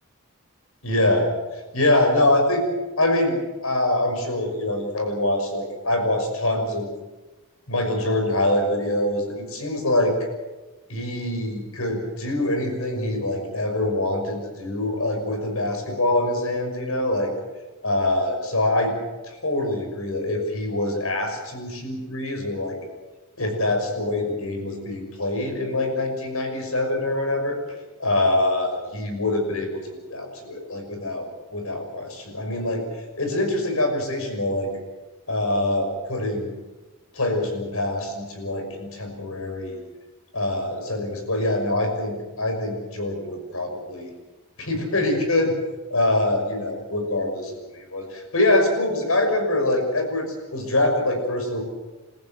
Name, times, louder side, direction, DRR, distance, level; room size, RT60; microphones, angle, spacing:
voice 1, 0.8-1.3 1.7-2.6 3.0-3.4 3.6-6.9 7.7-10.2 10.9-17.3 17.8-18.9 19.2-22.8 23.4-27.6 28.0-31.3 31.5-32.8 33.2-34.7 35.3-36.5 37.1-39.8 40.3-44.1 44.6-45.5 45.9-51.6, left 1 dB, 75° left, 4 dB, 5.9 m, -24 dB
29.0 x 14.5 x 7.8 m, 1.2 s
head